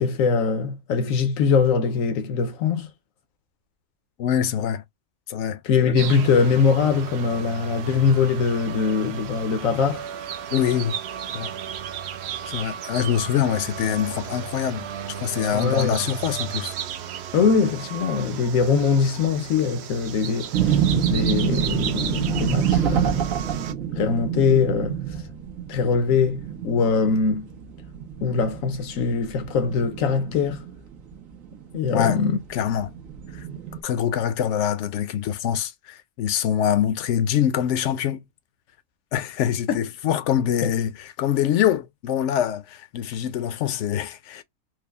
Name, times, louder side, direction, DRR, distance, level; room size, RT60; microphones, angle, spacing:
voice 1, 0.0-2.9 5.6-10.0 15.5-16.0 17.3-20.8 21.1-23.2 24.0-25.0 25.7-27.5 28.2-30.6 31.7-32.4 39.7-39.8 40.6-40.7, left 5 dB, 85° left, 1.1 m, -22 dB
voice 2, 4.2-4.8 5.3-5.6 10.5-11.0 11.3-11.5 12.5-14.9 15.2-16.7 31.9-32.2 32.5-32.9 33.3-33.4 33.8-38.2 39.1-44.4, left 9 dB, 70° left, 0.8 m, -24 dB
sound 1, 6.0-23.7, right 9 dB, 65° right, 0.7 m, -34 dB
sound 2, 20.5-33.8, right 9 dB, 80° right, 1.3 m, -27 dB
4.7 x 2.0 x 3.3 m
omnidirectional pair, 1.4 m